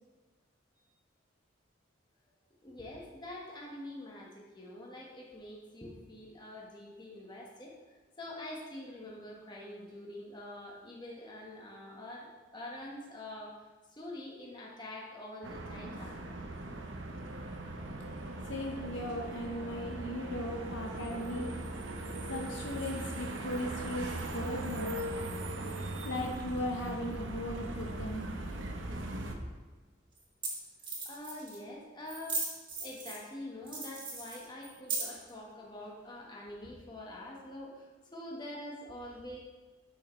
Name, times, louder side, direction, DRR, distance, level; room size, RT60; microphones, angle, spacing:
voice 1, 2.6-7.7 8.2-16.3 31.0-32.5 32.8-39.4, left 1 dB, 20° left, -2 dB, 1.5 m, -45 dB
sound 1, 15.4-29.3, right 1 dB, 70° right, 0.9 m, -39 dB
voice 2, 18.5-21.5 22.3-25.0 26.0-28.3, left 1 dB, 65° left, 1 dB, 0.8 m, -37 dB
sound 2, 29.3-29.4 30.2-30.3 30.4-30.5 30.8-31.6 32.1-33.3 33.7-35.3, right 3 dB, 25° right, 2.4 m, -37 dB
12.5 x 6.5 x 3.3 m, 1.3 s
head